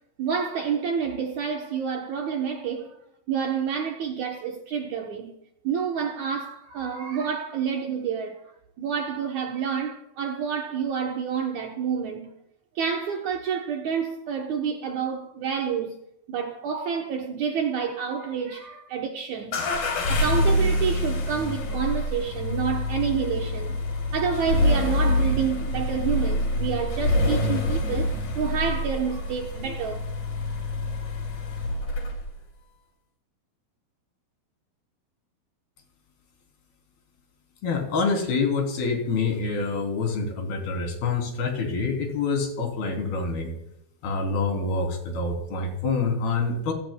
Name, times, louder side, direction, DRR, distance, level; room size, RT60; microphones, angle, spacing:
voice 1, 0.2-3.0 3.3-5.3 5.6-8.4 8.8-12.3 12.8-16.0 16.3-19.6 20.1-23.8 24.1-30.0, right 7 dB, 70° right, 1.8 m, -28 dB
sound 1, 19.5-32.4, left 1 dB, 65° left, 4.6 m, -26 dB
voice 2, 37.6-43.5 44.0-46.7, left 4 dB, 80° left, 5.2 m, -26 dB
28.0 x 17.5 x 2.2 m
omnidirectional pair, 4.4 m